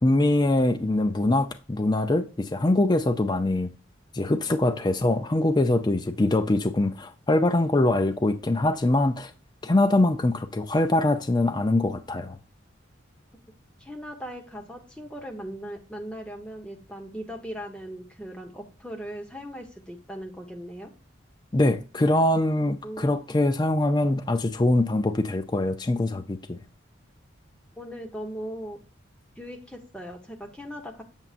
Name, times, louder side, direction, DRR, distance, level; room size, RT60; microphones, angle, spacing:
voice 1, 0.0-3.7 4.1-9.3 9.6-12.4 21.5-26.6, left 2 dB, 20° left, 0.4 m, -23 dB
voice 2, 13.8-20.9 22.8-23.2 27.8-28.8 29.4-31.0, equal, 5° left, 1.0 m, -38 dB
7.3 x 6.8 x 2.5 m
head